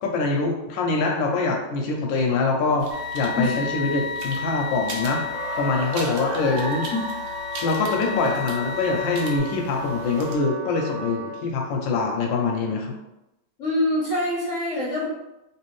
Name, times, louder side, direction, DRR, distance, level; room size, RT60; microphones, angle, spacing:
voice 1, 0.0-2.9 3.1-5.2 5.6-6.9 7.6-12.9, left 3 dB, 75° left, 1 dB, 1.2 m, -24 dB
sound 1, 2.8-10.4, right 4 dB, 75° right, 1.5 m, -40 dB
sound 2, 2.9-9.4, left 4 dB, 55° right, 0.7 m, -32 dB
Wind instrument woodwind instrument, 4.9-11.5, left 1 dB, ahead, 0.8 m, -36 dB
voice 2, 13.6-15.1, left 1 dB, 55° left, -6 dB, 0.9 m, -24 dB
3.3 x 3.1 x 3.1 m, 0.93 s
omnidirectional pair, 2.3 m